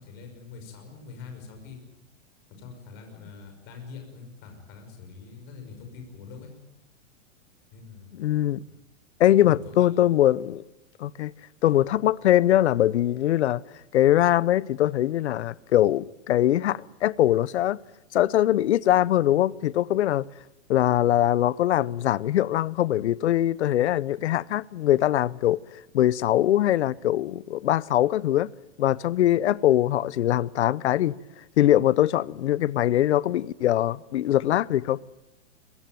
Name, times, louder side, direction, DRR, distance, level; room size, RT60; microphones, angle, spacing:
voice 1, 0.0-1.8 2.6-6.5 7.7-8.1 9.4-9.9, left 5 dB, 25° left, 5.7 m, -44 dB
voice 2, 8.2-8.6 9.2-10.6 11.0-11.3 11.6-13.6 13.9-17.8 18.1-20.2 20.7-25.6 25.9-28.5 28.8-31.1 31.6-35.0, left 13 dB, 60° left, 0.8 m, -22 dB
23.0 x 20.5 x 9.2 m
hypercardioid pair, 170°, 38 cm